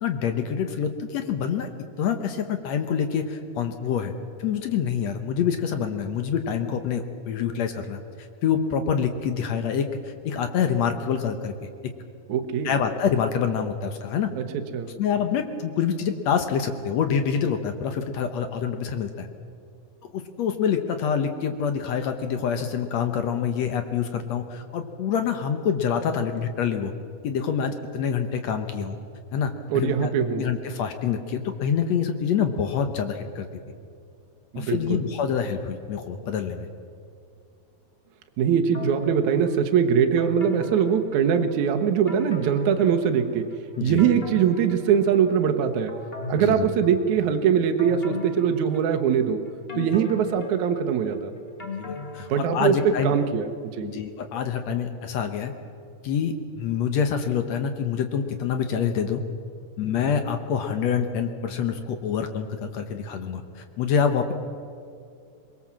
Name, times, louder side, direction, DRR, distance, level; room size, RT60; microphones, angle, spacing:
voice 1, 0.0-1.7 2.0-4.1 4.4-8.0 8.4-11.7 12.6-14.3 15.0-19.3 20.0-26.9 27.2-29.0 29.3-30.1 30.4-33.5 34.5-36.7 43.8-44.0 46.4-46.7 51.8-53.1 53.8-55.5 56.0-59.2 59.8-64.3, left 7 dB, 70° left, 7 dB, 1.6 m, -26 dB
voice 2, 12.3-12.7 14.4-14.9 29.7-30.4 34.5-35.0 38.4-43.5 43.8-46.0 46.3-49.4 49.8-51.3 52.3-53.9, right 7 dB, 65° right, 6 dB, 2.1 m, -22 dB
sound 1, 38.7-39.5 40.2-41.6 42.1-43.4 43.7-45.4 45.9-47.2 47.8-49.2 49.7-52.9 53.3-53.4, left 3 dB, 40° left, 0.8 m, -37 dB
23.0 x 21.5 x 7.4 m, 2.4 s
omnidirectional pair, 4.4 m